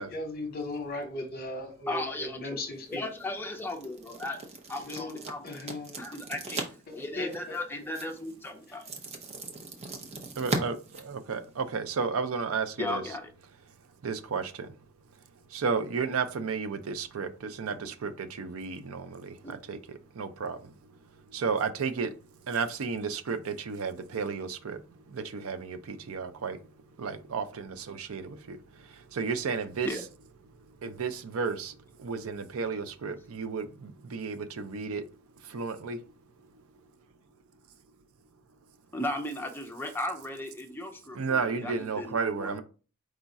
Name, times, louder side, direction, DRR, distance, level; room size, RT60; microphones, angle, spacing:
voice 1, 0.0-3.0 4.8-5.2 5.4-6.0 6.9-7.6 8.7-8.8, left 2 dB, 45° left, 0.9 m, -37 dB
voice 2, 1.9-2.6 2.9-4.4 4.7-5.4 6.0-6.6 6.9-8.8 12.8-13.3 19.4-19.6 29.8-30.0 38.9-42.6, left 1 dB, 10° left, 0.6 m, -36 dB
sound 1, 2.7-11.8, right 3 dB, 30° right, 0.7 m, -39 dB
voice 3, 10.4-10.8 11.0-13.0 14.0-14.7 15.5-19.8 20.2-20.6 21.3-22.1 22.5-24.8 25.1-26.6 27.0-28.6 29.1-29.9 30.8-31.7 32.0-35.0 35.5-36.0 41.1-42.6, right 5 dB, 75° right, 0.5 m, -32 dB
4.9 x 2.3 x 4.0 m
head